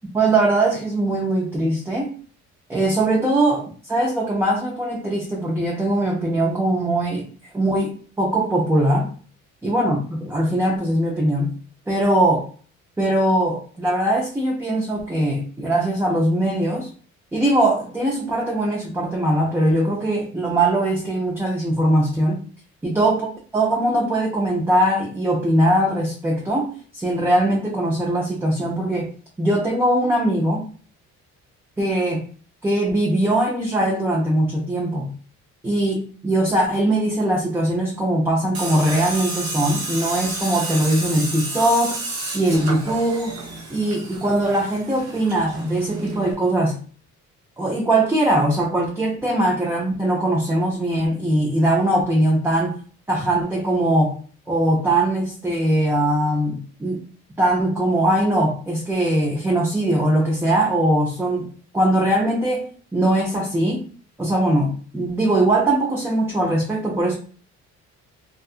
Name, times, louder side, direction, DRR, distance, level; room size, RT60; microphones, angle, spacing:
voice 1, 0.1-2.2 2.7-7.3 7.5-9.1 9.6-11.5 11.9-12.4 13.0-16.9 17.3-22.4 22.8-23.3 23.5-29.1 29.4-30.6 31.8-32.2 32.6-35.1 35.6-42.0 42.3-43.4 43.7-46.8 47.6-52.8 53.1-54.2 54.5-57.0 57.4-61.5 61.7-63.9 64.2-67.1, right 1 dB, 10° right, -2 dB, 0.4 m, -21 dB
Tools, 38.5-46.3, right 2 dB, 60° right, 1.0 m, -31 dB
2.6 x 2.4 x 2.4 m, 0.42 s
cardioid pair, 135°, 29 cm